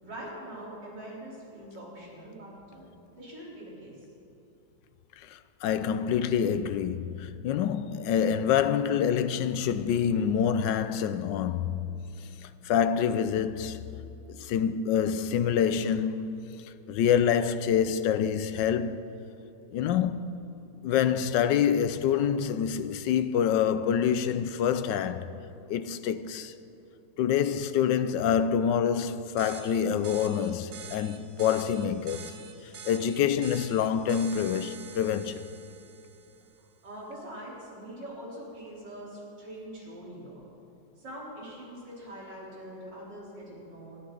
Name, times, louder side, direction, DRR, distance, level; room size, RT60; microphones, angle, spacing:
voice 1, 0.0-2.9 3.2-3.9 36.8-40.4 41.0-44.0, right 1 dB, 60° right, 4.4 m, -43 dB
voice 2, 5.2-12.0 12.4-14.0 14.4-19.0 19.7-25.3 25.7-26.5 27.2-32.4 32.6-35.5, left 8 dB, 75° left, 1.2 m, -27 dB
sound 1, 29.4-36.5, right 6 dB, 85° right, 1.7 m, -47 dB
22.0 x 13.0 x 3.9 m
omnidirectional pair, 2.1 m